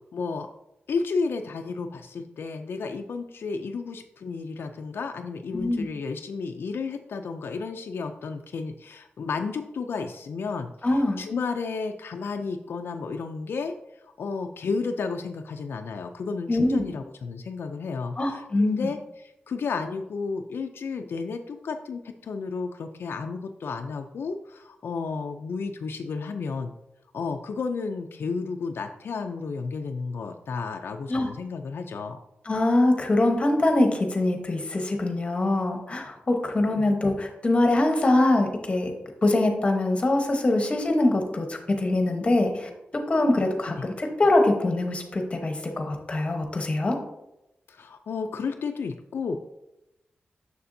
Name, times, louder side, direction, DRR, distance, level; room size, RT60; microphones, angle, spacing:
voice 1, 0.1-0.5 0.9-13.7 14.2-26.7 27.1-32.2 36.7-37.0 43.8-43.9 47.7-49.4, left 4 dB, 75° left, 5 dB, 0.4 m, -32 dB
voice 2, 5.5-5.8 10.8-11.2 16.5-16.8 18.2-18.9 31.1-31.3 32.5-38.9 39.2-42.7 43.1-47.0, left 2 dB, 30° left, 4 dB, 0.9 m, -23 dB
6.8 x 6.6 x 2.6 m, 0.88 s
wide cardioid pair, 165°, 4 cm